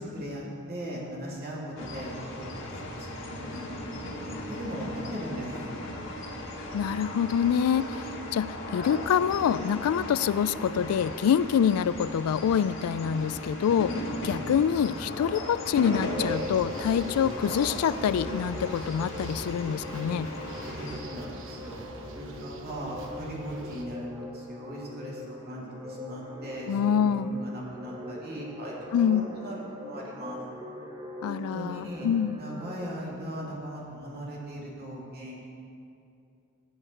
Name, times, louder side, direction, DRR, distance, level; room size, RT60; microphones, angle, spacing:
voice 1, 0.0-3.6 4.0-5.5 14.2-14.5 20.6-24.1 24.3-30.4 31.3-32.1 32.4-35.5, equal, 45° right, -4 dB, 2.5 m, -39 dB
sound 1, 1.8-21.0, left 1 dB, 60° left, 1.8 m, -37 dB
voice 2, 6.7-8.0 8.3-20.3 26.7-27.3 28.9-29.3 31.2-32.4, left 8 dB, 80° left, 18 dB, 0.3 m, -26 dB
sound 2, 15.8-33.0, left 1 dB, 15° right, 1.0 m, -42 dB
sound 3, 16.0-23.8, right 2 dB, 60° right, 1.1 m, -45 dB
15.5 x 8.0 x 4.4 m, 2.5 s
head